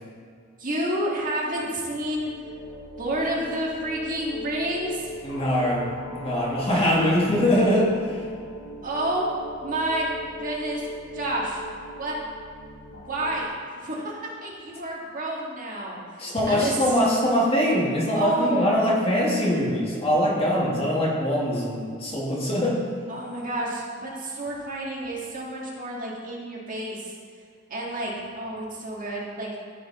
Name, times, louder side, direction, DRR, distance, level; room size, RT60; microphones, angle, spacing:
voice 1, 0.6-2.3 3.0-5.1 8.8-9.3 9.6-10.1 10.4-10.8 11.1-11.6 12.0-12.2 12.9-13.5 13.7-16.0 16.5-16.8 18.1-18.7 23.1-27.1 27.7-29.6, right 1 dB, 45° right, -3 dB, 1.6 m, -29 dB
sound 1, 2.0-13.5, equal, 70° left, 1.0 m, -40 dB
voice 2, 5.2-8.2 16.2-22.8, equal, 30° left, -5 dB, 1.9 m, -23 dB
14.5 x 5.0 x 3.6 m, 2.2 s
head